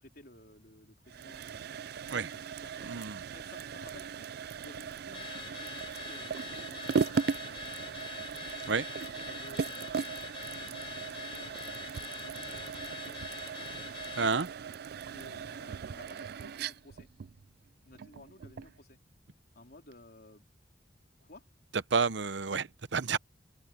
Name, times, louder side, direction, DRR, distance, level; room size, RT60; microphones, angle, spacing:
voice 1, 0.0-3.0 3.3-8.3 8.6-11.9 12.2-13.7 15.1-17.1 17.8-19.0 19.6-20.5 21.2-21.5, left 1 dB, 60° left, 4.1 m, -55 dB
sound 1, 1.1-18.8, right 6 dB, 60° right, 0.4 m, -38 dB
voice 2, 2.8-3.2 8.7-8.8 14.2-14.5 21.9-23.2, right 5 dB, 75° right, 0.8 m, -30 dB
Car / Alarm, 5.1-14.4, left 5 dB, 30° left, 0.8 m, -45 dB
head